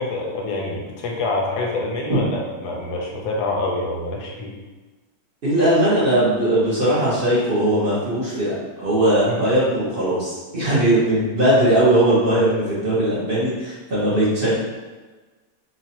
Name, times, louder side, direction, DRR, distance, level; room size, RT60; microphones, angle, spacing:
voice 1, 0.0-4.5 9.3-9.4, left 2 dB, 85° left, -1 dB, 1.3 m, -26 dB
voice 2, 5.4-14.5, right 1 dB, 35° right, -10 dB, 1.5 m, -19 dB
4.0 x 3.0 x 2.8 m, 1.3 s
omnidirectional pair, 1.7 m